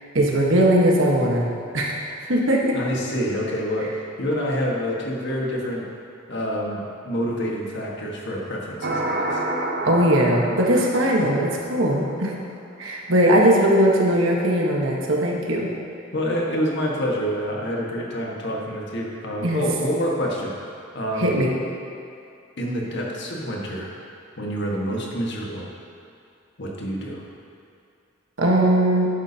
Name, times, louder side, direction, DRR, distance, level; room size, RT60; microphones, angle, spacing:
voice 1, 0.1-1.5 1.7-2.0 2.3-2.8 9.8-12.3 12.8-15.7 19.4-19.6 21.2-21.5 28.4-29.1, right 1 dB, 80° right, -2 dB, 1.4 m, -19 dB
voice 2, 2.7-5.9 6.3-9.4 16.1-20.5 20.9-21.3 22.6-23.9 24.4-25.7 26.6-27.2, equal, 65° left, -2 dB, 1.6 m, -27 dB
sound 1, 8.8-12.2, right 1 dB, 55° right, 0.9 m, -29 dB
12.0 x 8.9 x 2.9 m, 2.6 s
head